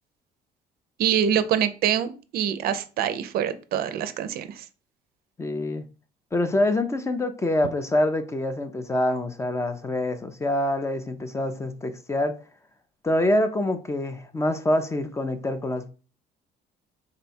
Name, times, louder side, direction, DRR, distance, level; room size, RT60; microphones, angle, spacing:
voice 1, 1.0-4.6, right 9 dB, 65° right, 0.4 m, -25 dB
voice 2, 5.4-5.9 6.3-12.4 13.0-15.9, left 1 dB, 15° left, 0.4 m, -25 dB
3.8 x 2.2 x 4.1 m
cardioid pair, 110°, 17 cm